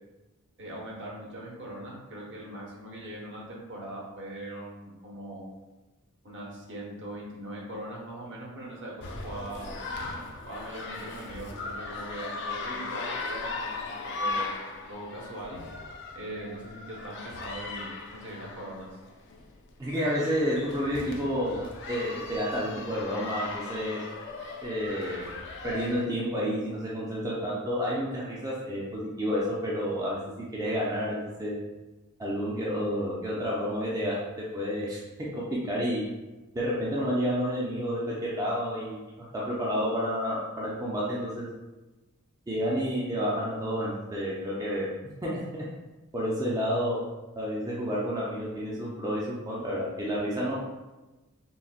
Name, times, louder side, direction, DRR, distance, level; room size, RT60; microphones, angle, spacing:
voice 1, 0.6-5.4 6.2-9.8 10.4-13.9 14.2-14.5 14.9-15.6 16.1-18.9, right 1 dB, 55° right, -3 dB, 0.8 m, -40 dB
sound 1, 9.0-26.1, left 3 dB, 55° left, 0.4 m, -38 dB
voice 2, 19.8-24.0 24.6-25.3 25.6-31.6 32.2-35.0 35.3-36.0 36.5-41.5 42.5-44.9 45.2-45.6 46.1-47.0 47.4-50.6, equal, 15° right, -6 dB, 0.4 m, -30 dB
3.8 x 2.1 x 2.4 m, 1.1 s
head